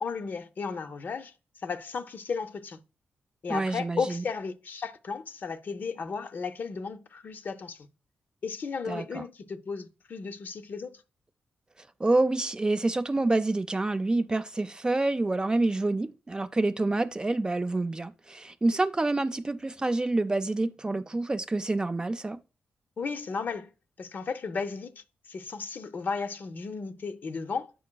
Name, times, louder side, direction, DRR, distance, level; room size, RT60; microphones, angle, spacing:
voice 1, 0.0-2.8 3.4-7.9 8.4-11.0 23.0-23.7 24.0-27.7, left 5 dB, 55° left, 0.5 m, -34 dB
voice 2, 3.5-4.2 8.9-9.2 12.0-22.4, right 2 dB, 20° right, 0.3 m, -27 dB
8.5 x 5.1 x 2.2 m
cardioid pair, 85°, 4 cm